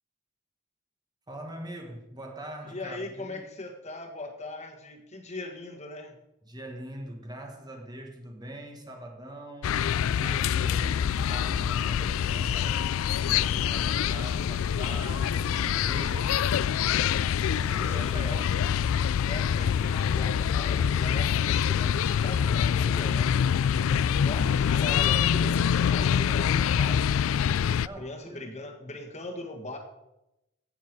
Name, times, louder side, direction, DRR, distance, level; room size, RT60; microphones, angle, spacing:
voice 1, 1.3-3.5 6.4-13.0 13.2-16.9 17.4-18.5 23.8-24.4 27.8-28.5, right 1 dB, 20° right, 1.5 m, -42 dB
voice 2, 2.6-6.2 17.8-18.4 19.3-23.4 24.2-27.2 28.0-29.8, left 2 dB, 35° left, 1.7 m, -39 dB
sound 1, 9.6-27.9, left 8 dB, 75° left, 0.3 m, -25 dB
16.5 x 7.0 x 4.7 m
head